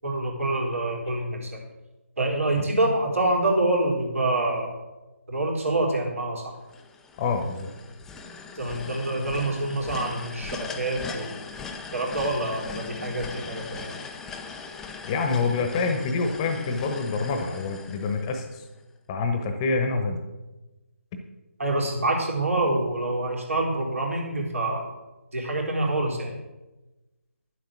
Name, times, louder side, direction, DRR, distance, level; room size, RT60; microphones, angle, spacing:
voice 1, 0.0-1.6 2.2-4.8 5.3-6.5 8.6-11.3 11.9-14.0 21.6-24.9 25.3-26.3, right 2 dB, 70° right, -1 dB, 3.9 m, -26 dB
sound 1, 6.7-18.8, left 5 dB, 5° left, 0.5 m, -40 dB
voice 2, 7.2-7.7 15.0-18.6 19.1-20.2, left 4 dB, 20° left, 6 dB, 1.1 m, -26 dB
11.0 x 7.8 x 6.1 m, 1.1 s
figure-of-eight pair, 150°, 8 cm